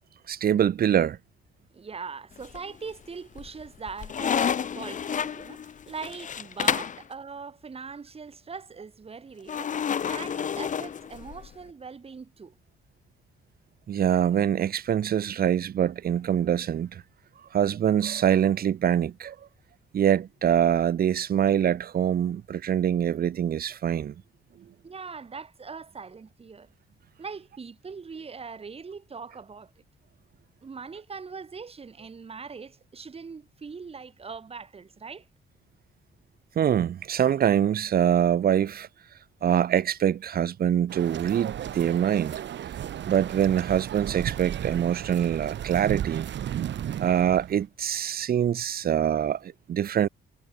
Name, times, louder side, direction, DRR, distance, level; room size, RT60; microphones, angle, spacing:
voice 1, 0.3-1.2 13.9-17.0 17.5-19.3 19.9-24.1 36.6-38.9 39.4-42.4 43.0-46.3 47.0-50.1, right 9 dB, 50° right, 1.0 m, -24 dB
voice 2, 1.7-9.7 10.1-12.5 24.8-26.7 27.2-29.7 30.6-35.3, right 5 dB, 30° right, 4.5 m, -41 dB
sound 1, 2.4-2.9 3.4-7.0 9.5-11.5, left 8 dB, 40° left, 0.9 m, -30 dB
sound 2, 40.9-47.6, right 10 dB, 65° right, 3.4 m, -34 dB
cardioid pair, 145°, 20 cm